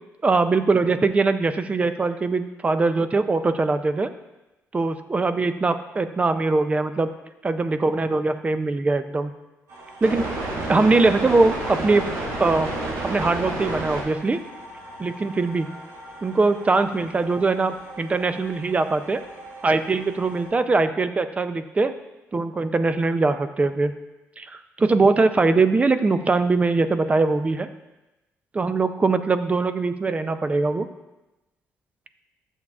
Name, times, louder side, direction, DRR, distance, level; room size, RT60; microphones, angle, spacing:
voice 1, 0.2-4.1 4.7-7.1 7.4-9.3 10.0-10.4 10.7-12.0 12.4-12.7 13.0-14.4 15.0-15.7 16.2-19.2 19.6-21.9 22.3-23.9 24.4-27.7 28.5-30.9, right 3 dB, 25° right, 10 dB, 0.4 m, -21 dB
sound 1, 9.7-20.5, right 2 dB, 85° right, 1.7 m, -33 dB
10.5 x 7.1 x 2.4 m, 1.0 s
cardioid pair, 100°, 6 cm